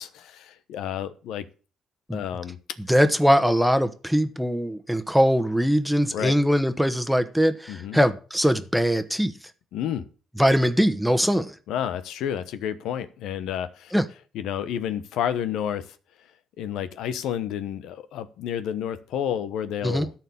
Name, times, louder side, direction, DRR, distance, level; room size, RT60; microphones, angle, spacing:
voice 1, 0.0-1.4 2.1-2.6 6.1-6.3 7.7-8.0 9.7-10.1 11.7-13.9 14.3-15.9 16.6-20.1, left 9 dB, 85° left, 12 dB, 1.0 m, -30 dB
voice 2, 2.9-9.3 10.4-11.5 13.9-14.0 19.8-20.1, equal, ahead, 10 dB, 1.2 m, -21 dB
13.0 x 4.6 x 8.6 m, 0.38 s
cardioid pair, 90°, 0 cm